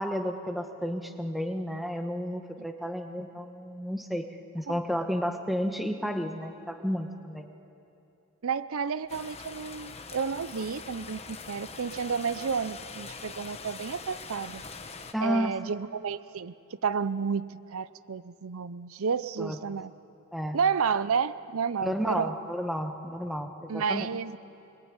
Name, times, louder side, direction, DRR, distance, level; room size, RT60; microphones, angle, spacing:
voice 1, 0.0-4.3 4.5-7.5 15.1-15.5 19.4-19.6 20.3-20.6 21.8-24.1, equal, ahead, 5 dB, 1.3 m, -32 dB
voice 2, 8.4-14.6 15.2-16.5 16.8-19.9 20.5-22.3 23.7-24.4, right 6 dB, 75° right, 15 dB, 0.6 m, -31 dB
sound 1, 9.1-15.1, left 4 dB, 30° left, 1.2 m, -43 dB
25.5 x 21.5 x 9.6 m, 2.9 s
head